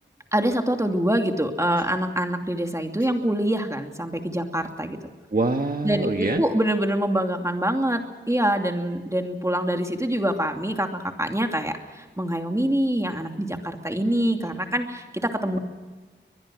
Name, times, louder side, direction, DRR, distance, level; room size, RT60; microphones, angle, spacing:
voice 1, 0.3-5.0 5.8-15.6, right 1 dB, 15° right, 4 dB, 2.7 m, -25 dB
voice 2, 5.3-6.4, right 3 dB, 45° right, 4 dB, 1.5 m, -24 dB
22.5 x 21.5 x 6.3 m, 1.3 s
wide cardioid pair, 65°, 20 cm